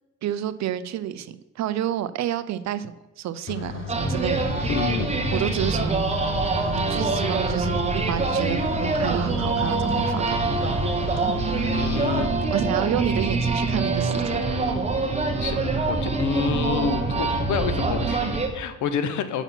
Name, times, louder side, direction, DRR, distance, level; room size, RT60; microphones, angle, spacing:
voice 1, 0.2-4.7 5.3-6.0 6.9-10.4 12.5-14.4, right 11 dB, 65° right, 14 dB, 0.5 m, -29 dB
sound 1, 3.5-12.2, left 6 dB, 40° left, 0.8 m, -35 dB
sound 2, 3.9-18.5, right 3 dB, 20° right, 1.1 m, -25 dB
voice 2, 4.7-5.1 11.7-12.3 15.4-15.6 15.9-19.4, left 7 dB, 75° left, 11 dB, 0.8 m, -28 dB
6.9 x 4.2 x 5.8 m, 1.1 s
cardioid pair, 90°, 30 cm